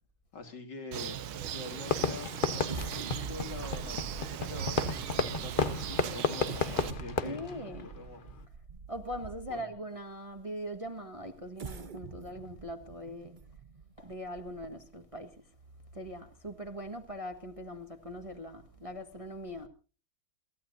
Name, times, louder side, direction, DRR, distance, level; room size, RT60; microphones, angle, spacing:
voice 1, 0.3-1.2 1.5-7.4 7.8-8.3 9.5-9.7, left 3 dB, 60° left, 3.1 m, -45 dB
Bird, 0.9-6.9, right 9 dB, 90° right, 1.8 m, -39 dB
Fireworks, 1.9-8.4, left 5 dB, 40° left, 0.8 m, -33 dB
sound 1, 2.7-9.8 10.4-10.5 11.4-14.9 15.4-15.5 15.9-16.1, right 5 dB, 55° right, 0.5 m, -45 dB
voice 2, 7.2-7.9 8.9-13.3 14.0-15.3 15.9-19.7, equal, 20° right, 1.5 m, -41 dB
28.0 x 14.5 x 2.6 m
omnidirectional pair, 2.2 m